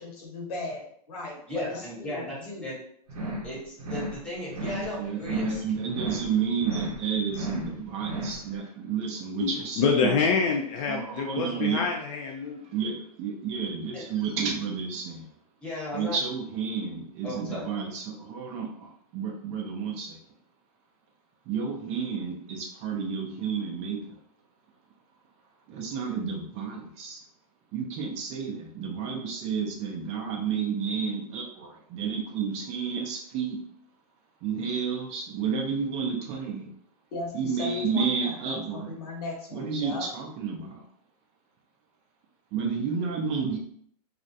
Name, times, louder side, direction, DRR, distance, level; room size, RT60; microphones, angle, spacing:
voice 1, 0.0-2.7 37.1-40.1, left 2 dB, 75° left, 0 dB, 1.0 m, -38 dB
voice 2, 1.5-2.8 3.4-5.6 13.9-14.0 15.6-16.2 17.2-17.9, left 1 dB, 5° left, -6 dB, 1.0 m, -36 dB
sound 1, 3.1-3.5 3.8-4.2 4.5-4.9 5.2-5.6 5.9-6.3 6.6-7.0 7.3-7.7 8.0-8.4, right 1 dB, 70° right, 0.8 m, -34 dB
voice 3, 5.0-10.4 10.9-11.9 12.7-15.3 15.9-20.2 21.5-24.2 25.7-27.2 27.7-33.6 34.4-36.7 37.3-39.0 39.5-40.8 42.5-43.6, right 6 dB, 35° right, 1 dB, 0.5 m, -31 dB
voice 4, 9.4-12.6, left 5 dB, 55° left, 1 dB, 0.4 m, -26 dB
2.4 x 2.0 x 2.7 m, 0.64 s
hypercardioid pair, 135°, 20 cm